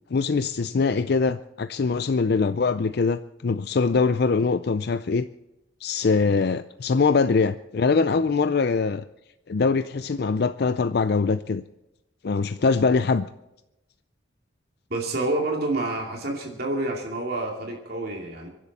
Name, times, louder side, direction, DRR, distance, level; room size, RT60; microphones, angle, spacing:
voice 1, 0.1-5.3 5.8-9.0 9.5-11.6 12.2-13.3, left 4 dB, 55° left, 12 dB, 0.4 m, -23 dB
voice 2, 14.9-18.5, right 2 dB, 55° right, 0 dB, 2.6 m, -28 dB
25.5 x 11.5 x 4.2 m, 0.92 s
head